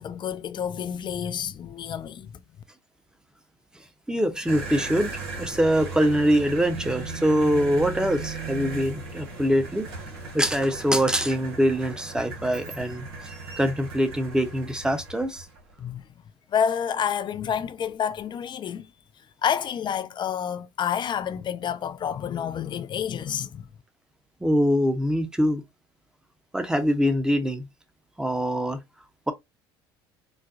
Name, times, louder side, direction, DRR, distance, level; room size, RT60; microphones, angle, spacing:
voice 1, 0.0-2.4 15.8-16.1 16.5-18.9 19.4-23.7, left 8 dB, 40° left, 0.5 m, -29 dB
voice 2, 4.1-9.9 10.3-13.1 13.6-15.5 24.4-25.6 26.5-27.7 28.2-28.8, equal, 5° right, 0.8 m, -23 dB
sound 1, 4.5-15.8, right 4 dB, 80° right, 1.3 m, -37 dB
4.0 x 2.2 x 2.6 m
hypercardioid pair, 70°, 13 cm